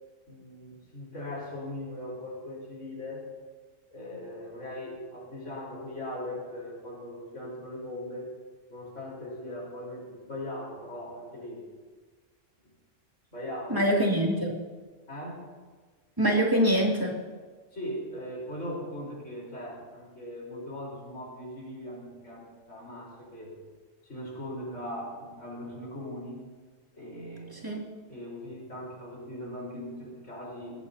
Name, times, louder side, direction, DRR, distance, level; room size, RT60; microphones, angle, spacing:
voice 1, 0.3-3.3 3.9-8.3 8.7-11.6 13.3-14.0 15.1-15.5 17.7-23.6 24.0-26.4 26.9-27.6 28.1-30.9, left 1 dB, 65° left, -4 dB, 4.5 m, -39 dB
voice 2, 13.7-14.5 16.2-17.1 27.6-27.8, equal, 15° right, -2 dB, 2.4 m, -24 dB
20.5 x 15.0 x 2.8 m, 1.4 s
omnidirectional pair, 1.4 m